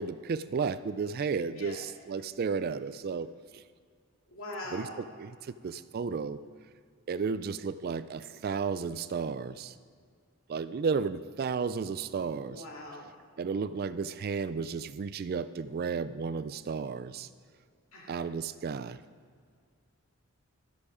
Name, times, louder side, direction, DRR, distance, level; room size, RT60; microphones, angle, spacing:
voice 1, 0.0-3.6 4.7-6.4 7.1-9.8 10.5-12.6 13.4-17.3 18.1-19.0, right 5 dB, 45° right, 14 dB, 0.3 m, -33 dB
voice 2, 4.3-5.0 12.5-13.1 17.9-18.1, left 1 dB, 70° left, -1 dB, 2.4 m, -41 dB
13.0 x 8.4 x 5.0 m, 2.1 s
head